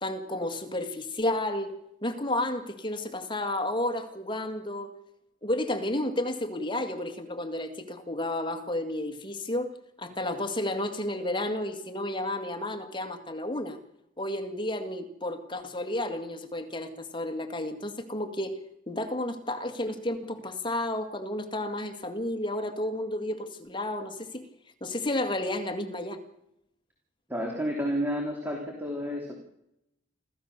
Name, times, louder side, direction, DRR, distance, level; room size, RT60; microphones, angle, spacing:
voice 1, 0.0-1.7 2.0-4.9 5.4-9.7 10.0-13.8 14.2-18.6 18.9-24.4 24.8-26.2, left 1 dB, 25° left, 7 dB, 2.0 m, -32 dB
voice 2, 27.3-29.3, equal, 10° right, 0 dB, 3.1 m, -30 dB
27.0 x 15.0 x 6.8 m, 0.81 s
head